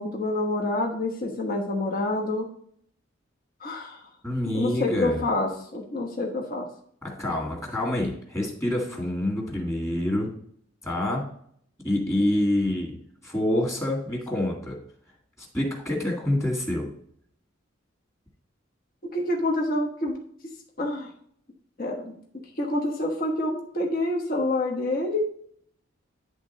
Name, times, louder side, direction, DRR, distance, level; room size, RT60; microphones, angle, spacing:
voice 1, 0.0-2.5 3.6-4.0 4.5-6.7 12.2-12.3 19.1-20.2 20.8-21.1 21.8-22.1 22.6-25.2, left 2 dB, 45° left, 0 dB, 1.2 m, -27 dB
voice 2, 4.2-5.3 7.0-10.3 10.8-11.2 11.8-13.0 13.2-14.8 15.4-16.9, left 1 dB, 15° left, -1 dB, 1.9 m, -27 dB
10.5 x 3.6 x 4.1 m, 0.63 s
head